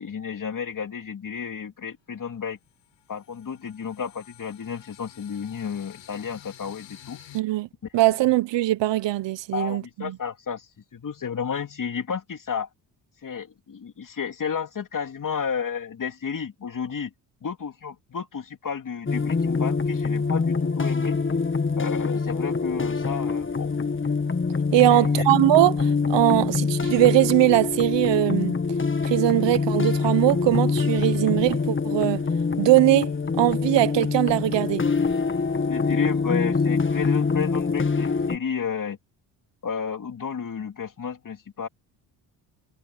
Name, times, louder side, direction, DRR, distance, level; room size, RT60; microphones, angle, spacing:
voice 1, 0.0-2.6 3.1-7.2 8.1-8.3 9.5-12.7 13.2-17.1 17.4-21.2 21.8-23.8 24.9-25.3 35.7-39.0 39.6-41.7, left 6 dB, 45° left, 3.0 m, -32 dB
sound 1, 2.0-2.1 2.5-7.4, left 11 dB, 80° left, 6.6 m, -49 dB
voice 2, 7.3-7.7 7.9-10.2 24.7-28.5 29.0-32.2 32.6-34.8, right 15 dB, 70° right, 1.1 m, -21 dB
sound 2, 19.1-38.4, left 4 dB, 25° left, 1.8 m, -25 dB
supercardioid pair, 65°, 44 cm